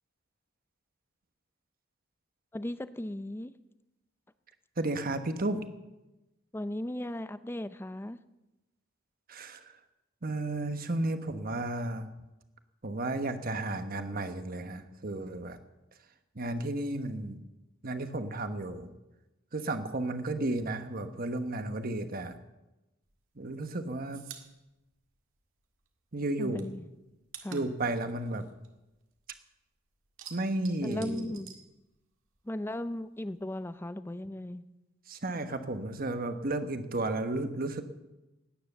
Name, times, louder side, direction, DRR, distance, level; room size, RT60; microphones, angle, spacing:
voice 1, 2.5-3.5 6.5-8.2 26.4-26.9 27.4-27.7 30.8-31.5 32.5-34.6, left 1 dB, 10° left, 14 dB, 0.5 m, -37 dB
voice 2, 4.8-5.6 9.3-9.6 10.2-12.1 12.8-15.6 16.4-17.4 17.8-18.9 19.5-22.3 23.4-24.3 26.1-26.7 27.5-28.5 30.3-31.3 35.1-37.8, right 2 dB, 45° right, 8 dB, 1.2 m, -33 dB
sound 1, 23.1-25.9 26.2-29.5 29.8-32.4 32.6-33.8, right 8 dB, 70° right, 1.8 m, -51 dB
17.5 x 9.7 x 6.7 m, 1.0 s
head